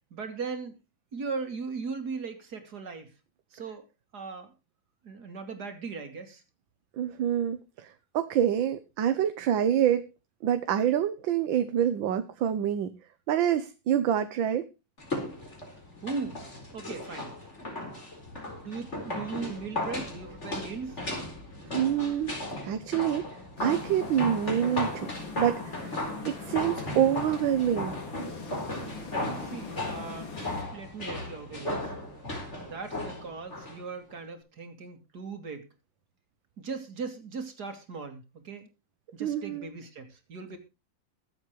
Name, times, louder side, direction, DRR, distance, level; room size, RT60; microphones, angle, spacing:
voice 1, 0.1-0.7 1.1-3.1 3.5-3.8 4.1-4.5 5.0-6.4 16.0-16.5 16.7-17.3 18.6-21.0 29.4-30.3 30.7-31.9 32.6-35.7 36.6-38.7 39.1-40.6, right 4 dB, 55° right, 7 dB, 2.9 m, -38 dB
voice 2, 7.0-10.0 10.4-12.9 13.3-14.6 21.7-22.4 22.6-23.2 23.6-25.1 25.4-26.0 26.2-28.0 39.2-39.7, right 10 dB, 80° right, 10 dB, 1.7 m, -26 dB
sound 1, 15.0-33.8 34.1-34.2, left 1 dB, 35° left, 4.5 m, -36 dB
sound 2, 23.6-30.6, left 4 dB, 80° left, 3.4 m, -41 dB
23.0 x 7.9 x 3.1 m, 0.27 s
omnidirectional pair, 2.1 m